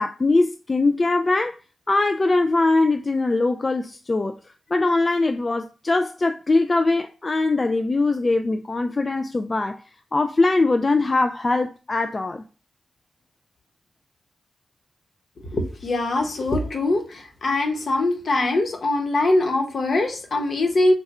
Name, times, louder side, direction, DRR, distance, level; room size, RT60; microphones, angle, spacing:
voice 1, 0.0-1.6 1.9-4.4 4.7-9.8 10.1-12.4, left 2 dB, 35° left, 0.3 m, -21 dB
voice 2, 15.5-20.9, left 2 dB, 60° left, 1.1 m, -22 dB
3.7 x 2.3 x 4.2 m
cardioid pair, 70°, 0 cm